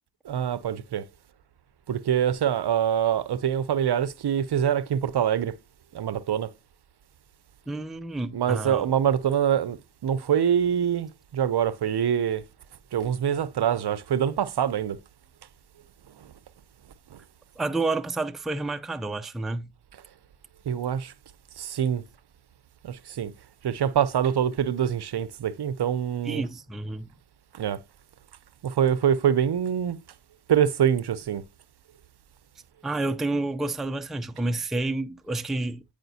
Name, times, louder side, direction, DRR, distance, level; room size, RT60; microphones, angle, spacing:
voice 1, 0.2-1.0 1.9-5.5 5.9-6.5 8.3-9.8 10.0-12.4 12.9-15.0 16.2-16.3 17.1-17.2 20.7-21.1 21.6-22.0 22.8-23.3 23.6-26.4 27.5-27.8 28.6-30.0 30.5-31.4, right 9 dB, 55° right, 0.6 m, -25 dB
voice 2, 7.7-8.9 17.6-19.7 26.2-27.1 32.8-35.8, right 2 dB, ahead, 0.5 m, -29 dB
9.0 x 5.0 x 2.7 m
cardioid pair, 60°, 48 cm